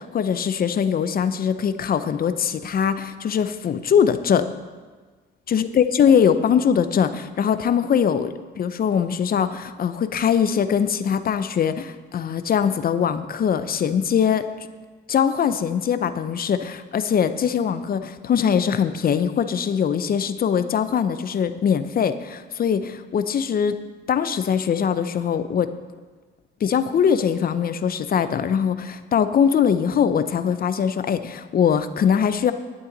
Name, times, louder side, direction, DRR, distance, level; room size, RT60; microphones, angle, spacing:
voice 1, 0.0-4.5 5.5-14.4 15.1-23.8 24.1-25.7 26.6-32.5, left 7 dB, 50° left, 11 dB, 0.6 m, -22 dB
11.5 x 8.8 x 4.0 m, 1.4 s
cardioid pair, 90°, 20 cm